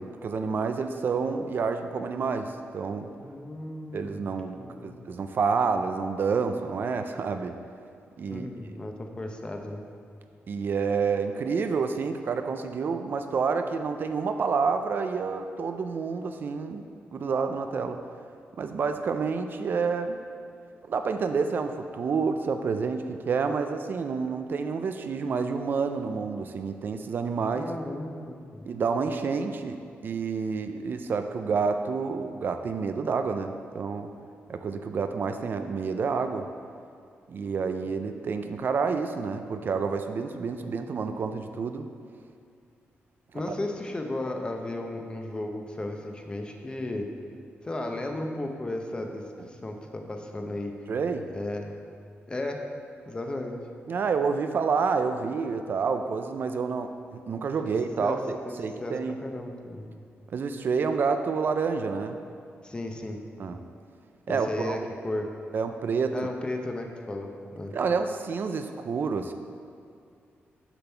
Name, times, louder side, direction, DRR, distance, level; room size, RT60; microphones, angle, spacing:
voice 1, 0.0-3.1 3.9-7.6 8.2-8.5 10.5-16.8 17.1-18.0 18.6-20.2 20.9-27.7 28.6-34.1 34.5-36.5 37.3-41.9 50.9-51.3 53.9-59.1 60.3-62.2 63.4-63.6 64.3-64.8 65.5-66.3 67.7-69.3, right 5 dB, 50° right, 7 dB, 0.4 m, -29 dB
voice 2, 3.2-4.2 4.5-5.0 8.2-9.8 27.5-28.7 43.3-47.1 47.6-50.7 51.3-51.7 52.3-52.6 53.1-53.6 57.6-57.7 58.0-58.2 58.5-58.6 58.8-59.9 62.6-63.2 64.3-64.8 65.0-65.3 66.1-67.3 67.6-67.7, left 2 dB, 20° left, 3 dB, 0.7 m, -34 dB
6.8 x 6.0 x 4.5 m, 2.3 s
wide cardioid pair, 120°, 4 cm